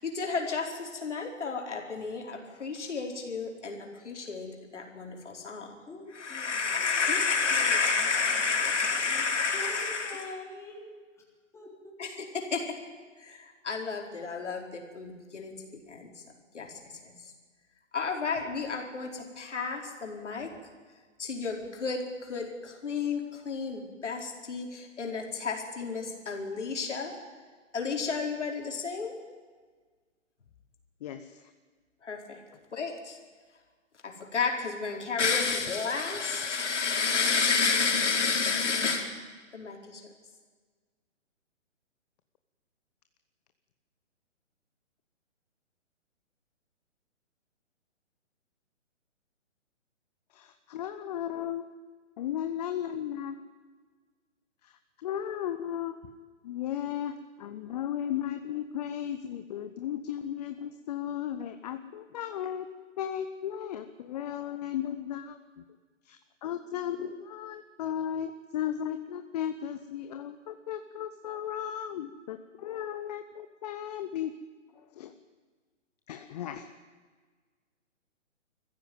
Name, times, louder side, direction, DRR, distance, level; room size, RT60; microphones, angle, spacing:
voice 1, 0.0-5.7 6.1-10.3 12.0-12.7 13.2-15.5 15.9-16.1 16.5-16.7 17.0-17.1 17.9-20.5 21.2-27.1 27.7-29.1 32.0-32.4 32.7-33.2 34.0-39.1 39.5-40.0, left 5 dB, 65° left, 2 dB, 4.6 m, -31 dB
voice 2, 5.9-7.0 7.4-9.3 9.5-10.9 11.5-11.9, left 1 dB, 5° left, -2 dB, 3.7 m, -46 dB
voice 3, 31.0-31.4 50.3-51.6 52.2-53.4 54.6-54.7 55.0-55.9 56.4-62.7 63.0-65.6 66.1-74.3 75.0-75.1 76.1-76.7, left 10 dB, 30° left, 9 dB, 1.0 m, -35 dB
22.5 x 15.0 x 9.3 m, 1.5 s
figure-of-eight pair, 135°, 38 cm